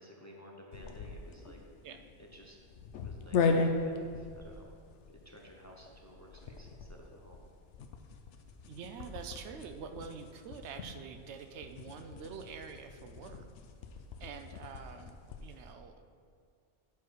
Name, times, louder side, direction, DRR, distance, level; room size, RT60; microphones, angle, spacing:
voice 1, 0.0-1.6 2.2-2.6 2.9-4.7 5.1-7.4, equal, 20° left, -1 dB, 0.7 m, -54 dB
sound 1, 0.7-15.6, left 4 dB, 85° left, 0.9 m, -38 dB
voice 2, 8.7-13.5 14.2-15.9, right 6 dB, 80° right, 7 dB, 0.9 m, -46 dB
10.0 x 4.8 x 4.6 m, 2.2 s
omnidirectional pair, 1.2 m